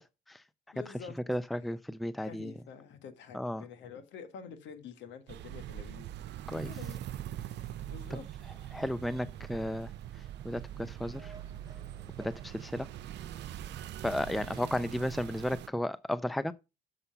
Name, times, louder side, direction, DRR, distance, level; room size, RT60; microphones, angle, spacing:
voice 1, 0.7-1.2 2.2-6.1 6.7-8.3 8.6-8.7 14.3-14.7, left 7 dB, 75° left, 1.5 m, -48 dB
voice 2, 1.3-2.6 3.3-3.6 6.5-6.7 8.7-11.3 12.2-12.9 14.0-16.5, left 1 dB, ahead, 0.5 m, -34 dB
sound 1, 5.3-15.7, right 12 dB, 65° right, 0.6 m, -42 dB
sound 2, 9.3-15.1, right 3 dB, 20° right, 1.4 m, -59 dB
6.9 x 5.5 x 5.7 m
supercardioid pair, 65°, 19 cm